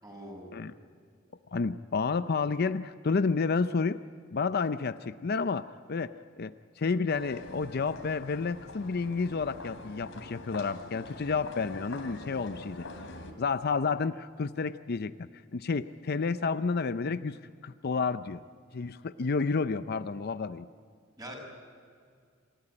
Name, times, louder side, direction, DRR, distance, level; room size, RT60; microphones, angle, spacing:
voice 1, 0.0-0.6 21.2-21.3, right 1 dB, 20° right, 0 dB, 6.3 m, -43 dB
voice 2, 1.5-4.0 4.3-12.9 13.4-15.1 15.5-17.4 17.6-18.4 18.7-20.7, left 4 dB, 55° left, 12 dB, 0.5 m, -30 dB
sound 1, 7.1-13.3, left 2 dB, 90° left, 3.0 m, -45 dB
27.0 x 14.0 x 10.0 m, 2.1 s
head